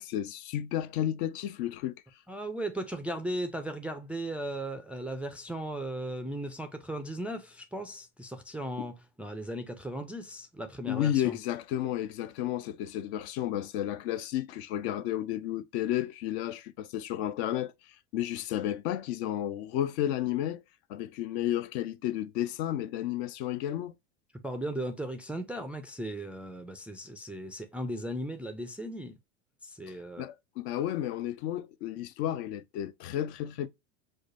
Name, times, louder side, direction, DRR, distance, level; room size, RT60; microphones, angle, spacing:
voice 1, 0.0-2.0 8.8-8.9 10.9-17.7 18.1-20.6 20.9-23.9 29.9-33.7, left 12 dB, 65° left, 0.5 m, -32 dB
voice 2, 2.3-11.3 24.4-29.2 29.6-30.2, right 1 dB, 5° right, 0.3 m, -37 dB
4.9 x 2.1 x 2.4 m
hypercardioid pair, 100°, 36 cm